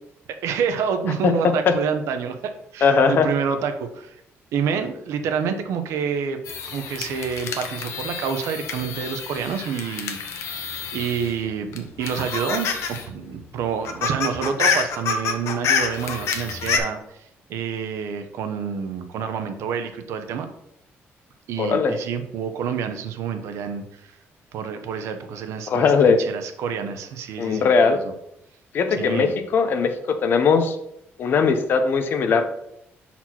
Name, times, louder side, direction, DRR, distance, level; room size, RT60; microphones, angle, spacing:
voice 1, 0.3-2.4 2.7-4.2 4.5-10.7 10.9-17.0 17.5-20.5 21.5-24.1 24.5-28.1 28.9-29.3, right 7 dB, 90° right, 7 dB, 0.8 m, -28 dB
voice 2, 1.2-1.7 2.8-3.3 21.6-22.0 25.7-26.2 27.4-28.0 28.7-29.9 30.2-30.8 31.2-32.5, left 5 dB, 45° left, 8 dB, 0.7 m, -19 dB
sound 1, 6.5-11.4 11.7-13.1 13.3-13.4 13.7-16.8, left 6 dB, 80° left, 0.9 m, -27 dB
6.0 x 4.3 x 4.3 m, 0.79 s
cardioid pair, 175°, 5 cm